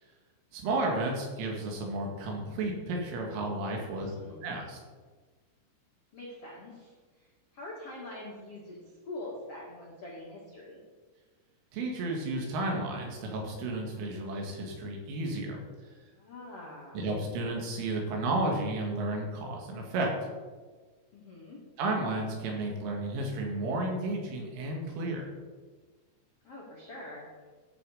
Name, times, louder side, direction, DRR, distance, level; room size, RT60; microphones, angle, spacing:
voice 1, 0.5-4.1 4.4-4.8 11.7-15.6 16.9-20.3 21.8-25.2, right 2 dB, 75° right, 0 dB, 4.3 m, -32 dB
voice 2, 3.9-4.4 6.1-10.8 16.1-17.0 21.1-21.6 26.4-27.3, left 2 dB, 85° left, -4 dB, 1.3 m, -44 dB
13.5 x 7.2 x 4.9 m, 1.4 s
omnidirectional pair, 5.9 m